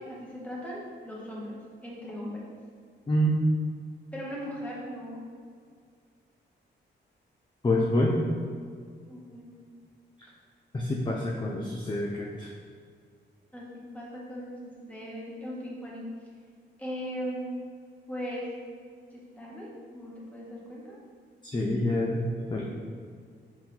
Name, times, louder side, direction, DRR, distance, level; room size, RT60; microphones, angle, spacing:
voice 1, 0.0-2.4 4.1-5.2 9.1-9.5 11.1-11.4 13.5-16.0 16.8-17.6 18.1-18.4 19.4-21.0 22.5-22.6, equal, 5° left, -5 dB, 1.7 m, -39 dB
voice 2, 3.1-3.4 7.6-8.2 10.7-12.5 21.4-22.6, left 1 dB, 25° left, -2 dB, 0.6 m, -27 dB
6.8 x 3.9 x 4.4 m, 2.1 s
wide cardioid pair, 130°, 19 cm